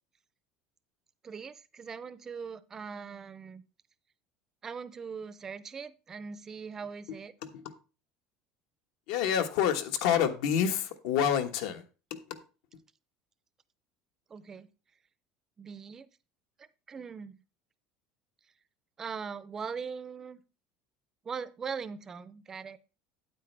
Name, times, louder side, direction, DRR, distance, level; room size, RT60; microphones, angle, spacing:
voice 1, 1.2-3.6 4.6-7.3 14.3-14.7 15.6-16.1 16.6-17.4 19.0-20.4 21.2-22.8, right 6 dB, 20° right, 0.4 m, -41 dB
voice 2, 9.1-11.8 12.3-12.4, left 8 dB, 75° left, 1.3 m, -28 dB
8.9 x 8.6 x 3.3 m
cardioid pair, 175°, 2 cm